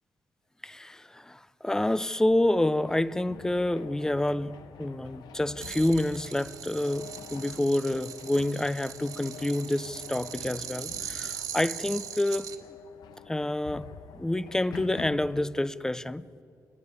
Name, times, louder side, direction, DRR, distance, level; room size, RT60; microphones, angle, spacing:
voice 1, 0.6-12.5 13.3-13.9 14.1-16.4, left 1 dB, 10° left, 0.5 m, -28 dB
sound 1, 2.3-15.4, left 7 dB, 90° left, 1.3 m, -47 dB
sound 2, 5.6-12.6, right 8 dB, 65° right, 2.1 m, -40 dB
28.5 x 22.0 x 9.6 m
wide cardioid pair, 145°, 7 cm